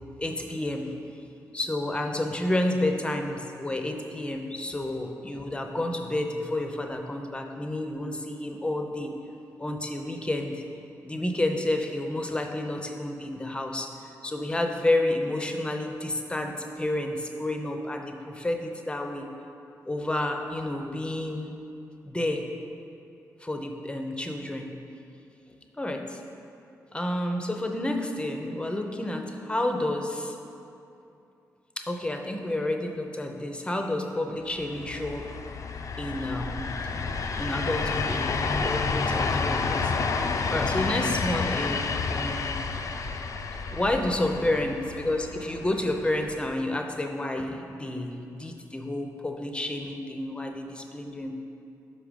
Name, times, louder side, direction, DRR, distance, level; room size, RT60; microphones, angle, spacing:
voice 1, 0.2-0.9 1.5-9.1 9.6-10.6 11.0-13.9 14.2-19.3 19.8-21.5 22.0-22.4 23.4-24.7 25.8-26.2 26.9-30.4 31.8-35.2 36.0-36.7 37.4-41.8 42.1-42.6 43.7-51.3, left 1 dB, 15° left, 4 dB, 0.7 m, -30 dB
sound 1, 34.6-46.5, left 4 dB, 55° left, 0.4 m, -30 dB
5.6 x 4.9 x 5.1 m, 2.7 s
cardioid pair, 70°, 6 cm